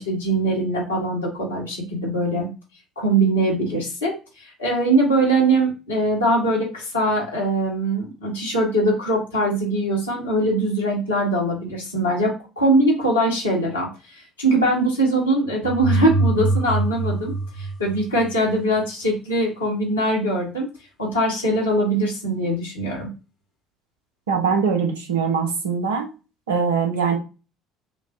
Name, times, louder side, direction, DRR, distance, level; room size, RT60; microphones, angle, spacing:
voice 1, 0.0-2.5 3.0-4.1 4.4-17.3 17.6-20.7 21.0-23.1, right 1 dB, 80° left, -3 dB, 1.5 m, -22 dB
sound 1, 15.6-18.5, right 2 dB, 45° left, 0.8 m, -24 dB
voice 2, 24.3-26.1 26.5-27.2, right 6 dB, 70° right, 3 dB, 0.8 m, -22 dB
6.0 x 2.3 x 2.8 m, 0.32 s
figure-of-eight pair, 55°, 0 cm